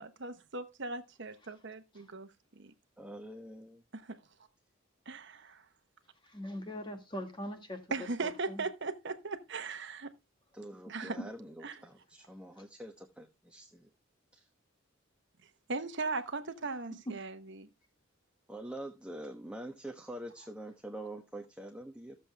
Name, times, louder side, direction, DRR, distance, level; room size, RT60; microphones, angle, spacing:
voice 1, 0.0-2.3 2.6-2.7 3.9-4.2 5.1-5.6 7.9-10.1 10.9-11.2 11.6-11.8 15.7-17.7, right 3 dB, 60° right, 1.1 m, -38 dB
voice 2, 3.0-3.8 10.5-13.9 14.3-14.5 18.5-22.2, right 1 dB, 5° right, 1.1 m, -45 dB
voice 3, 6.3-8.6, left 1 dB, 25° left, 2.2 m, -42 dB
14.0 x 7.5 x 3.4 m
head